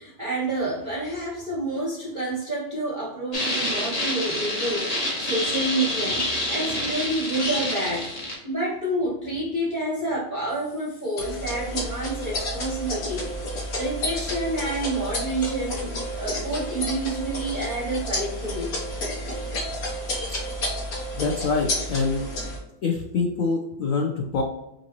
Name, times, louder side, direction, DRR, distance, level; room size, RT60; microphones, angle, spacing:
voice 1, 0.0-8.2 8.4-13.4 13.7-18.7, right 1 dB, 50° right, -5 dB, 0.6 m, -29 dB
sound 1, 3.3-8.4, left 1 dB, 30° left, 0.7 m, -27 dB
sound 2, 11.2-22.6, left 1 dB, 55° left, 1.4 m, -31 dB
voice 2, 21.2-22.3 22.8-24.4, left 4 dB, 75° left, 0 dB, 0.7 m, -25 dB
5.4 x 2.7 x 2.9 m, 0.89 s
omnidirectional pair, 2.1 m